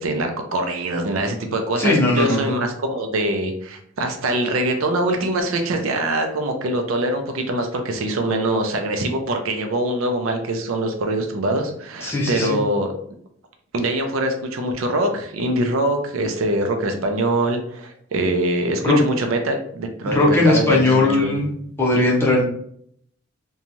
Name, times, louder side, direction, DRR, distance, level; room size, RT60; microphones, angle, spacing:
voice 1, 0.0-12.9 13.7-21.4, right 1 dB, 80° right, 4 dB, 0.5 m, -23 dB
voice 2, 1.8-2.5 12.0-12.6 18.8-19.0 20.1-21.5 21.8-22.4, left 2 dB, 10° left, -5 dB, 0.7 m, -18 dB
3.0 x 2.3 x 2.6 m, 0.66 s
head